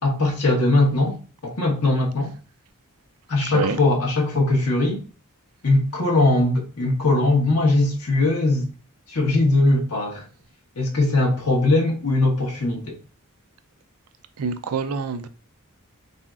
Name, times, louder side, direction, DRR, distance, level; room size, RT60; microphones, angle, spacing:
voice 1, 0.0-2.3 3.3-5.0 5.6-8.7 9.1-10.2 10.7-13.0, left 2 dB, 75° left, 1.4 m, -20 dB
voice 2, 3.4-3.8 14.4-15.3, right 5 dB, 75° right, 0.5 m, -26 dB
4.1 x 4.0 x 2.4 m
head